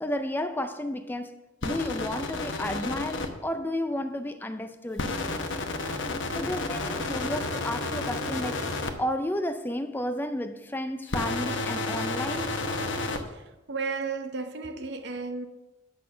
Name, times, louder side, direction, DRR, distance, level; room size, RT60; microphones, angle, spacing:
voice 1, 0.0-1.4 1.6-5.2 6.3-8.6 9.0-12.6, left 1 dB, 10° left, 0.4 m, -32 dB
sound 1, 1.6-3.3 5.0-8.9 11.1-13.2, left 2 dB, 65° left, 1.0 m, -31 dB
voice 2, 13.3-15.5, right 4 dB, 60° right, 0.8 m, -34 dB
8.4 x 6.2 x 6.8 m
head